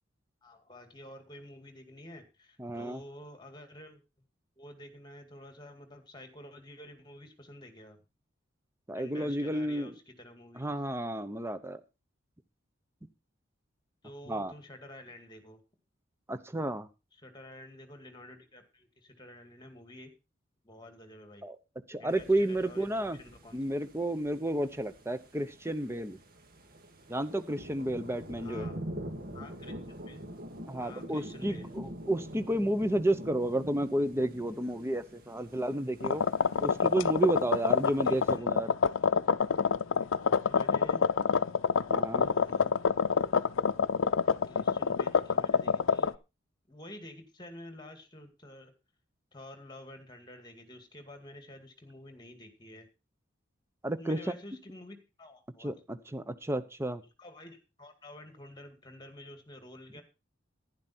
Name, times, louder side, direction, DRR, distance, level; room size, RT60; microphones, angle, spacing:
voice 1, 0.4-4.3 4.6-8.0 8.9-10.7 14.0-15.6 17.2-20.1 20.6-21.5 22.0-23.6 28.4-28.8 29.3-30.2 30.8-31.7 38.0-38.5 40.4-41.0 42.0-42.7 44.5-46.1 46.7-48.7 49.3-52.9 54.0-55.7 57.2-60.0, left 1 dB, 20° left, 7 dB, 2.1 m, -50 dB
voice 2, 2.6-3.0 8.9-9.9 10.6-11.8 14.3-14.5 16.3-16.9 21.4-21.6 21.9-23.2 23.5-26.2 27.1-28.7 30.7-36.2 36.6-38.7 41.9-42.3 53.8-54.2 55.6-57.0, right 1 dB, 15° right, 11 dB, 0.9 m, -31 dB
sound 1, 22.1-38.4, equal, 50° right, 2.0 m, -46 dB
sound 2, 36.0-46.1, left 6 dB, 85° left, 0.5 m, -26 dB
11.5 x 10.5 x 4.4 m, 0.29 s
head